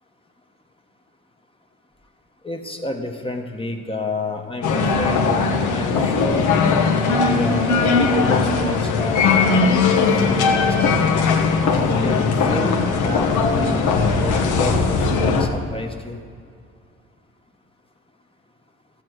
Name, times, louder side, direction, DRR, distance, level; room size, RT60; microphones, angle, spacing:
voice 1, 2.4-6.5 7.1-9.7 10.3-11.3 12.0-16.2, left 2 dB, 20° left, 3 dB, 1.1 m, -30 dB
sound 1, 4.6-15.5, left 4 dB, 85° left, 1.3 m, -19 dB
13.5 x 4.7 x 7.9 m, 2.2 s
cardioid pair, 90°, 30 cm